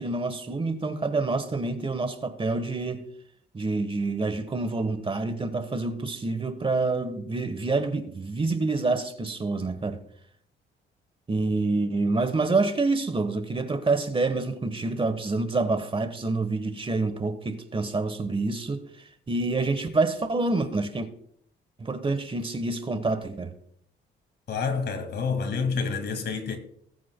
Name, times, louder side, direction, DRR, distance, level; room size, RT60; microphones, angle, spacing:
voice 1, 0.0-3.0 3.5-10.0 11.3-18.8 19.3-21.1 21.8-23.5, right 3 dB, 25° right, 1.1 m, -27 dB
voice 2, 24.5-26.6, left 5 dB, 60° left, 2.0 m, -28 dB
19.0 x 8.5 x 2.2 m
cardioid pair, 90°, 20 cm